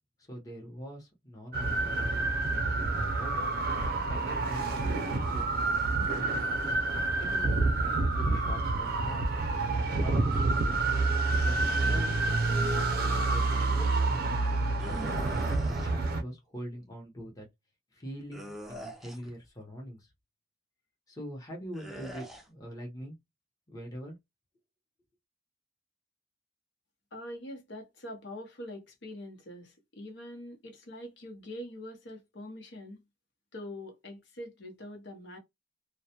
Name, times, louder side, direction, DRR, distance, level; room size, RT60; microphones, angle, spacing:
voice 1, 0.3-3.4 3.8-5.5 6.0-6.8 7.2-9.4 9.7-10.8 11.1-14.0 14.6-15.3 15.6-17.5 17.9-20.1 21.1-23.2 23.7-24.2, equal, 20° left, 0.8 m, -43 dB
sound 1, 1.5-16.2, right 3 dB, 55° right, 0.5 m, -28 dB
sound 2, 14.8-15.9 18.3-19.3 21.7-22.4, equal, ahead, 0.4 m, -44 dB
voice 2, 27.1-33.0 33.5-35.4, left 1 dB, 70° left, 0.9 m, -44 dB
2.2 x 2.1 x 2.8 m
head